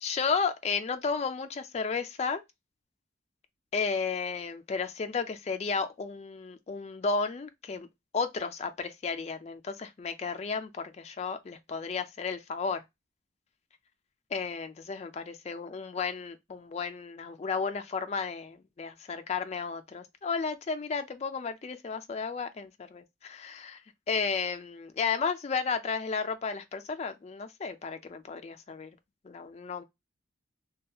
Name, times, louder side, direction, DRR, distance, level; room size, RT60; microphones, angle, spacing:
voice 1, 0.0-2.4 3.7-7.9 8.1-12.8 14.3-23.8 24.1-28.9 29.2-29.8, left 5 dB, 30° left, 0.3 m, -33 dB
2.7 x 2.2 x 2.3 m
head